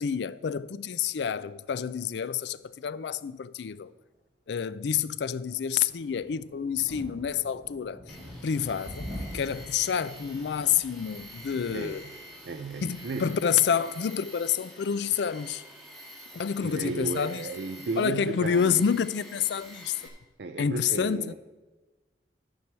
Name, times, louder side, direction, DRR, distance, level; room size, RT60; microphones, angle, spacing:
voice 1, 0.0-3.9 4.5-8.2 8.4-12.0 12.8-15.6 16.3-17.5 18.0-20.0 20.6-21.3, left 7 dB, 75° left, 0.4 m, -28 dB
sound 1, 5.7-13.2, equal, 25° right, 3.2 m, -45 dB
Tools, 8.1-20.1, equal, ahead, 1.8 m, -48 dB
voice 2, 11.7-12.1 12.4-13.4 16.6-18.8 20.4-21.3, right 3 dB, 65° right, 0.5 m, -34 dB
12.5 x 4.7 x 7.4 m
head